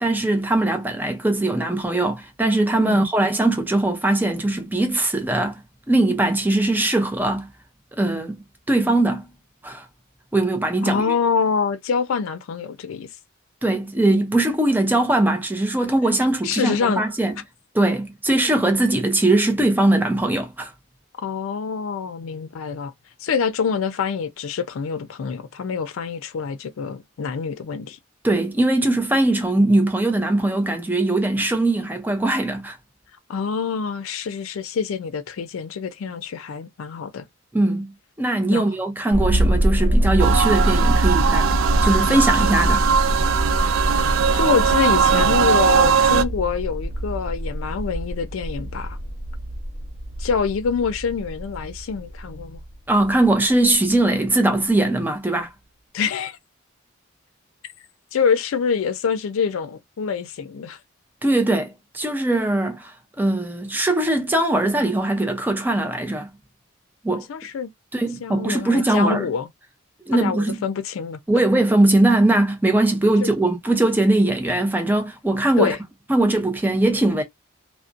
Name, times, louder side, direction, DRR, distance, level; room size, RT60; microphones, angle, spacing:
voice 1, 0.0-5.6 5.9-7.5 8.0-9.3 9.6-9.9 10.3-11.1 13.6-17.3 17.7-20.7 28.2-32.8 37.5-37.9 38.2-41.5 41.8-42.8 52.9-55.5 61.2-66.3 67.0-67.3 67.9-69.3 70.1-70.6 71.3-75.7 76.1-77.2, right 2 dB, 10° right, 0.5 m, -20 dB
voice 2, 10.8-13.1 16.4-17.0 21.2-22.9 23.2-28.0 33.3-37.3 38.5-38.7 44.3-49.0 50.2-52.6 55.9-56.4 58.1-60.8 67.1-67.7 68.2-69.5 70.1-71.2 73.2-73.3 75.6-75.8, left 6 dB, 75° left, 0.4 m, -25 dB
sound 1, 39.1-53.3 53.9-54.0, equal, 55° left, 0.9 m, -24 dB
sound 2, 40.2-46.2, right 7 dB, 70° right, 0.3 m, -20 dB
2.5 x 2.1 x 2.4 m
head